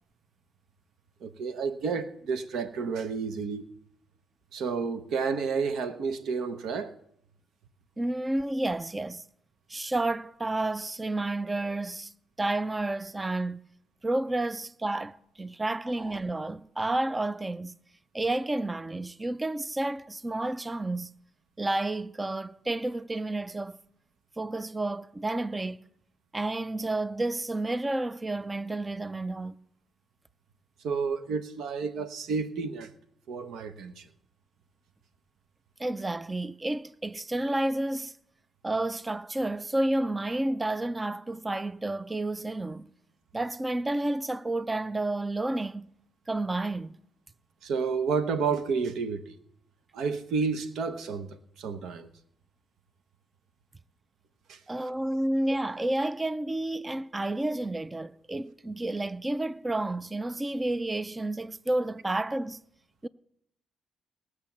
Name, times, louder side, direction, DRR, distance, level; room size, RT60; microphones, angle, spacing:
voice 1, 1.2-3.7 4.5-7.0 30.8-32.9 33.3-34.1 47.6-49.4 49.9-52.1 54.5-54.6, right 5 dB, 75° right, 1.0 m, -31 dB
voice 2, 8.0-9.2 9.7-12.1 12.4-13.6 14.0-17.8 18.1-21.1 21.6-23.8 24.4-25.8 26.3-29.6 35.8-38.1 38.6-42.9 43.3-45.9 46.3-46.9 54.7-62.6 63.0-63.1, right 2 dB, 20° right, 0.4 m, -30 dB
18.5 x 6.6 x 7.2 m
cardioid pair, 90°, 0 cm